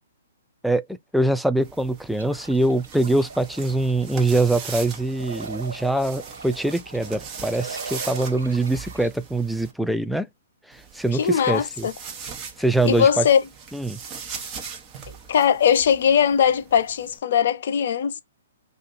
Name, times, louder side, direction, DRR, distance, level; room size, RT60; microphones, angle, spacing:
voice 1, 1.1-10.3 10.7-11.9 12.6-13.3 13.7-14.0, right 2 dB, ahead, 0.3 m, -23 dB
sound 1, 1.6-9.7 10.7-17.2, right 6 dB, 25° right, 1.0 m, -40 dB
sound 2, 2.1-9.1, right 4 dB, 80° right, 1.7 m, -40 dB
voice 2, 11.2-11.9 12.8-13.4 15.3-18.2, left 8 dB, 60° left, 0.5 m, -20 dB
2.6 x 2.5 x 4.1 m
hypercardioid pair, 130°, 0 cm